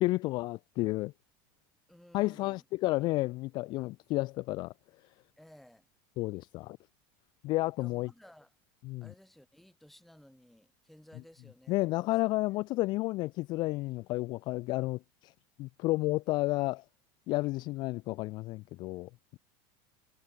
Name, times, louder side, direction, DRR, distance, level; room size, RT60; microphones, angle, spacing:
voice 1, 0.0-1.1 2.1-4.7 6.2-6.8 7.4-8.1 8.8-9.1 11.7-15.3 15.6-16.8 17.3-19.4, left 20 dB, 40° left, 0.4 m, -31 dB
voice 2, 1.9-2.7 5.4-5.9 7.8-8.5 9.0-12.2, left 1 dB, ahead, 4.2 m, -57 dB
supercardioid pair, 155°, 11 cm